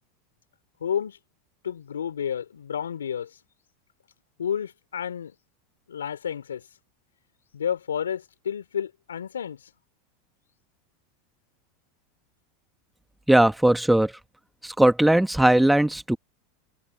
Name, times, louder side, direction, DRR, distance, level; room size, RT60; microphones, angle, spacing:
voice 1, 0.8-1.2 1.6-3.3 4.4-5.3 5.9-6.6 7.5-9.6, left 8 dB, 85° left, 3.8 m, -30 dB
voice 2, 13.3-14.1 14.6-16.2, right 1 dB, 5° right, 1.6 m, -19 dB
hypercardioid pair, 90°, 0 cm